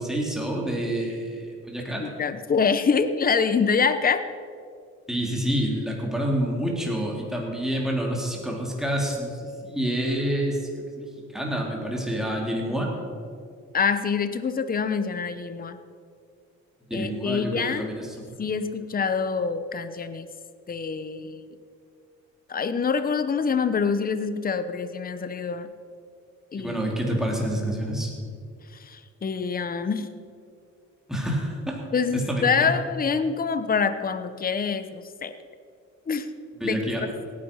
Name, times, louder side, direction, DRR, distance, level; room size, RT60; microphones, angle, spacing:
voice 1, 0.0-2.0 5.1-10.7 11.0-11.1 11.3-12.9 16.9-18.1 26.6-28.1 31.1-31.8 32.1-32.7 36.6-37.0, right 1 dB, ahead, -2 dB, 3.9 m, -28 dB
voice 2, 2.0-4.2 13.7-15.8 16.9-17.9 18.4-20.3 20.7-21.4 22.5-25.7 26.5-26.8 28.7-30.1 31.9-35.4 36.1-36.3 36.6-37.1, left 5 dB, 30° left, 11 dB, 0.9 m, -26 dB
17.5 x 10.5 x 5.6 m, 2.3 s
cardioid pair, 90°, 30 cm